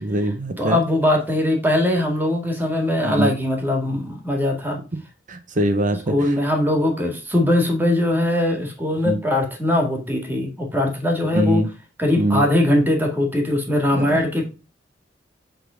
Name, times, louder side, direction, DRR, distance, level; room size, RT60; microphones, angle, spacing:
voice 1, 0.0-0.8 3.0-3.3 5.3-6.0 9.1-9.2 11.3-11.7 12.2-12.4 13.9-14.2, right 1 dB, 45° right, 8 dB, 0.8 m, -22 dB
voice 2, 0.6-4.8 6.1-11.6 12.0-14.4, left 1 dB, 10° right, 2 dB, 2.0 m, -21 dB
8.1 x 3.8 x 5.0 m, 0.31 s
head